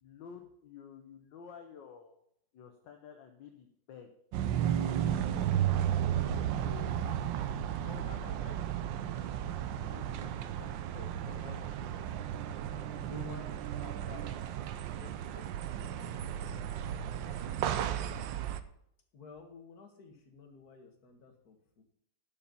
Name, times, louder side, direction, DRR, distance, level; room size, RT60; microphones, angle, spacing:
voice 1, 0.0-2.2 2.5-4.1 5.9-7.0 7.8-9.4 9.7-12.0 12.3-12.4 13.0-14.4 15.0-15.9, left 7 dB, 65° left, 5 dB, 1.4 m, -52 dB
sound 1, 4.3-18.6, right 10 dB, 70° right, 1.2 m, -34 dB
voice 2, 19.1-21.8, left 5 dB, 45° left, 4 dB, 1.9 m, -54 dB
11.5 x 5.4 x 7.0 m, 0.73 s
omnidirectional pair, 2.4 m